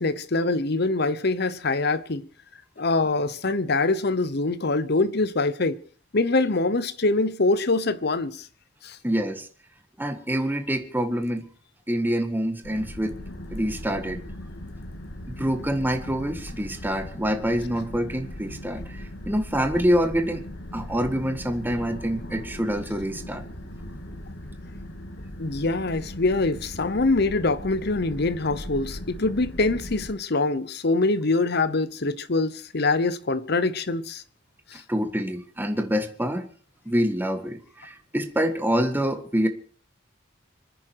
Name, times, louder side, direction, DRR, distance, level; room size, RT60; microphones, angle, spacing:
voice 1, 0.0-2.3 2.8-5.8 6.1-8.5 8.8-9.0 25.4-34.2 34.7-34.8, left 3 dB, 55° left, 1.0 m, -24 dB
voice 2, 9.0-9.5 10.0-11.4 11.9-13.2 13.5-14.2 15.3-20.4 20.7-23.4 34.9-36.5 36.9-39.5, equal, 10° right, 1.7 m, -26 dB
sound 1, 12.6-30.1, left 1 dB, 80° left, 2.6 m, -39 dB
26.5 x 9.9 x 4.8 m
head